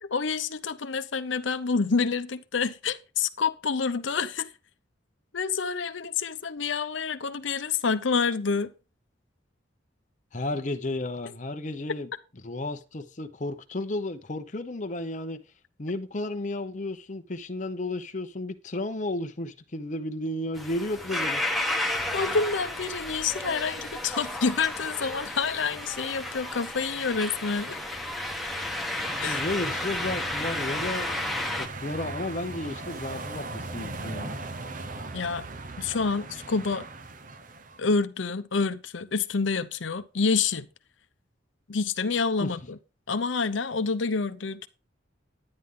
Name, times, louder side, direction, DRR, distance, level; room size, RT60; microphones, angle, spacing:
voice 1, 0.0-4.5 5.3-8.7 22.1-27.8 29.2-29.4 35.1-35.5 35.8-36.9 37.8-40.7 41.7-42.8 43.1-44.7, left 5 dB, 75° left, 0.7 m, -28 dB
voice 2, 10.3-12.1 12.4-15.4 15.8-21.5 29.2-31.1 31.5-34.4 42.4-42.6, left 2 dB, 40° left, 0.8 m, -33 dB
sound 1, 20.5-31.7, left 1 dB, ahead, 1.3 m, -32 dB
sound 2, 29.0-37.8, right 3 dB, 45° right, 0.8 m, -39 dB
11.0 x 9.7 x 3.7 m
head